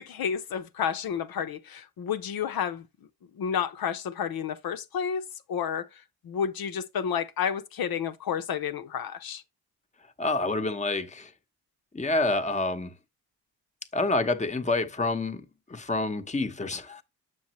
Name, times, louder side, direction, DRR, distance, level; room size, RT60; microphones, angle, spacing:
voice 1, 0.0-2.9 3.4-5.2 5.5-5.9 6.2-9.4, left 7 dB, 65° left, 1.0 m, -30 dB
voice 2, 10.2-11.3 11.9-12.9 13.9-17.0, left 2 dB, 20° left, 1.1 m, -28 dB
7.2 x 5.9 x 3.1 m
supercardioid pair, 50°, 38 cm